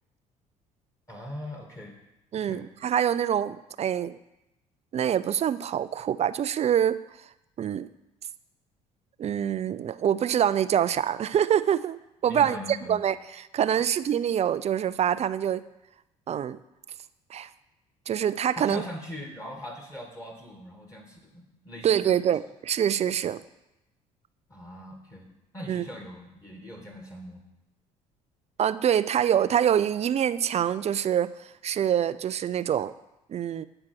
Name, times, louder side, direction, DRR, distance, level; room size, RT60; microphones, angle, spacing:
voice 1, 1.1-2.0 2.4-2.7 12.2-13.0 18.6-22.2 24.5-25.3 25.5-27.4, left 1 dB, 15° left, 2 dB, 1.8 m, -41 dB
voice 2, 2.3-4.2 4.9-7.0 7.6-7.9 9.2-13.2 13.5-15.6 16.3-16.6 17.3-17.5 18.1-18.8 21.8-23.4 25.7-25.8 28.6-31.3 31.6-32.9 33.3-33.7, right 9 dB, 35° right, 15 dB, 0.4 m, -25 dB
8.8 x 4.4 x 6.0 m, 0.93 s
hypercardioid pair, 60°, 18 cm